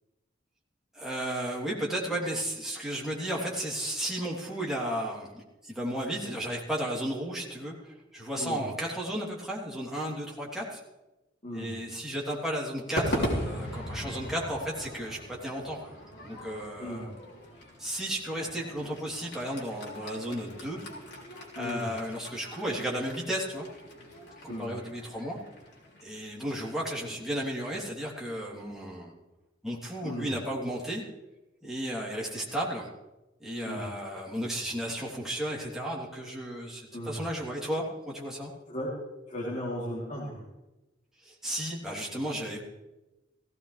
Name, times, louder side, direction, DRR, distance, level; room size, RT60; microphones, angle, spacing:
voice 1, 0.9-10.8 11.5-15.9 16.2-17.1 17.8-20.8 21.5-23.7 24.4-25.4 26.0-29.1 29.6-31.0 31.6-32.9 33.4-38.5 41.2-42.6, equal, ahead, -5 dB, 3.3 m, -34 dB
Crowd / Fireworks, 13.0-27.4, equal, 60° left, 3.4 m, -39 dB
voice 2, 21.5-21.9 24.5-24.7 30.0-30.3 33.6-33.9 36.9-37.2 38.7-38.9 39.3-40.4, equal, 40° left, -7 dB, 3.2 m, -36 dB
17.0 x 16.0 x 3.4 m, 1.0 s
head